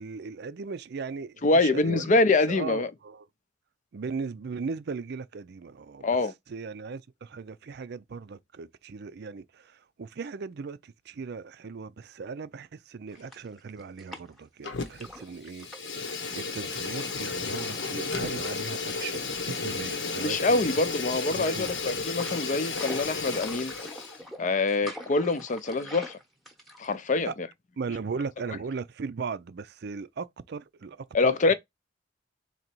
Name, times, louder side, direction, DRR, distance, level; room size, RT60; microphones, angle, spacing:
voice 1, 0.0-2.0 2.5-3.3 3.9-6.1 6.5-20.7 21.3-21.8 24.8-24.9 27.2-27.3 27.8-31.5, right 5 dB, 60° right, 0.4 m, -38 dB
voice 2, 1.4-2.9 6.0-6.3 20.2-23.7 24.4-26.2 26.8-27.5 31.1-31.5, left 3 dB, 40° left, 0.5 m, -25 dB
sound 1, 13.1-14.5 14.9-16.0 16.7-17.9 18.2-18.4 19.2-19.7 20.2-20.8 21.3-27.2, left 1 dB, ahead, 0.9 m, -45 dB
Fire, 14.6-15.2 15.5-24.2, left 4 dB, 70° left, 1.0 m, -33 dB
4.0 x 2.8 x 4.4 m
head